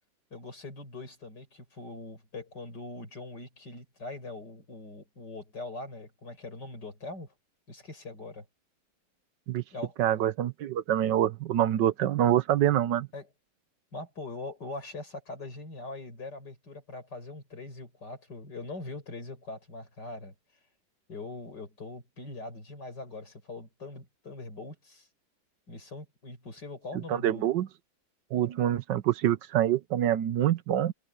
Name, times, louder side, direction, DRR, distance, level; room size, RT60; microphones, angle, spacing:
voice 1, 0.3-7.3 7.7-8.4 9.7-10.0 13.1-13.3 13.9-20.3 21.1-25.1 25.7-27.5, left 2 dB, 60° left, 7.7 m, -42 dB
voice 2, 10.0-13.1 27.1-27.7 28.3-30.9, right 11 dB, 70° right, 1.4 m, -26 dB
omnidirectional pair, 2.1 m